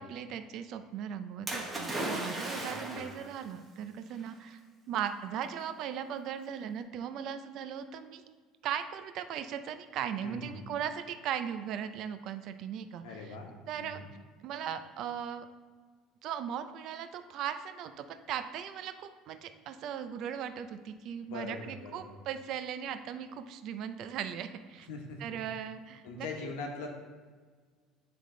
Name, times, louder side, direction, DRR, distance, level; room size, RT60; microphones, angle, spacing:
voice 1, 0.0-4.6 4.9-8.2 8.6-13.3 13.7-14.0 14.4-15.5 16.2-24.9 25.2-26.3, right 9 dB, 50° right, 10 dB, 0.4 m, -38 dB
Splash splatter, 1.5-3.3 4.2-4.3, right 1 dB, 15° right, 1.1 m, -36 dB
voice 2, 2.5-3.1 10.2-10.6 13.0-13.5 13.8-14.1 21.3-22.1 24.9-25.4 26.0-26.9, left 3 dB, 90° left, 2 dB, 1.1 m, -42 dB
9.2 x 3.4 x 3.8 m, 1.5 s
cardioid pair, 155°, 0 cm